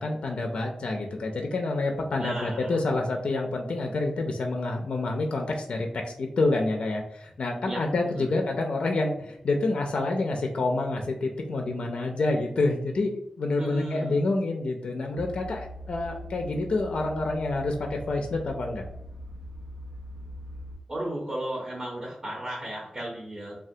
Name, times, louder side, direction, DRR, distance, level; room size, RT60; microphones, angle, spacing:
voice 1, 0.0-18.8, left 2 dB, 65° left, 2 dB, 0.4 m, -28 dB
voice 2, 2.2-2.7 7.6-7.8 8.1-8.3 13.6-14.2 20.9-23.6, right 1 dB, 25° right, -4 dB, 0.7 m, -34 dB
sound 1, 15.1-20.8, equal, 85° right, 0.6 m, -41 dB
3.2 x 2.2 x 2.7 m, 0.76 s
wide cardioid pair, 125°, 2 cm